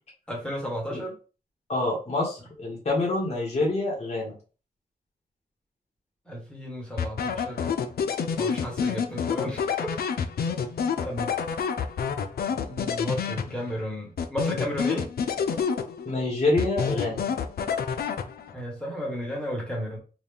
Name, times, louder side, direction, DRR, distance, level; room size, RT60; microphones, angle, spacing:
voice 1, 0.3-1.2 6.3-7.7 8.3-9.7 11.0-11.3 12.5-15.1 18.5-20.0, equal, 5° left, -2 dB, 1.5 m, -33 dB
voice 2, 1.7-4.3 16.0-17.2, left 2 dB, 45° left, -3 dB, 1.6 m, -26 dB
sound 1, 7.0-13.8 14.2-16.2 16.6-18.6, left 6 dB, 75° left, 0.4 m, -28 dB
4.0 x 2.4 x 3.4 m, 0.35 s
wide cardioid pair, 120°, 16 cm